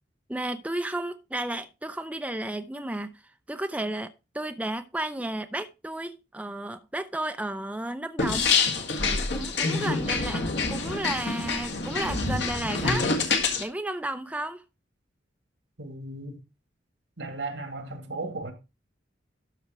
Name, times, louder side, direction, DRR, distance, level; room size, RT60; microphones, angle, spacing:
voice 1, 0.3-3.2 3.5-8.5 9.3-13.1 13.6-14.6, right 1 dB, 10° right, 0.5 m, -33 dB
sound 1, 8.2-13.6, left 4 dB, 70° left, 1.7 m, -26 dB
voice 2, 15.8-16.4 17.2-18.5, right 2 dB, 85° right, 2.0 m, -35 dB
12.5 x 4.3 x 4.8 m
head